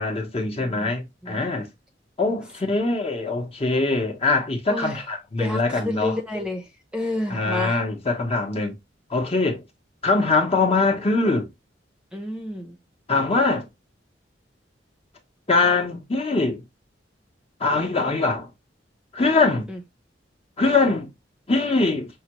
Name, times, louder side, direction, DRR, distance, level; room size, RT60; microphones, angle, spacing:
voice 1, 0.0-1.7 2.2-6.2 7.3-8.7 9.1-9.6 10.0-11.5 13.1-13.7 15.5-16.6 17.6-18.5 19.1-19.7 20.6-21.1 21.5-22.1, left 3 dB, 35° left, 0.9 m, -22 dB
voice 2, 4.7-5.0 5.4-6.6 6.9-7.8 12.1-12.8 19.7-19.8, left 1 dB, 5° right, 0.8 m, -30 dB
5.6 x 2.3 x 2.9 m
head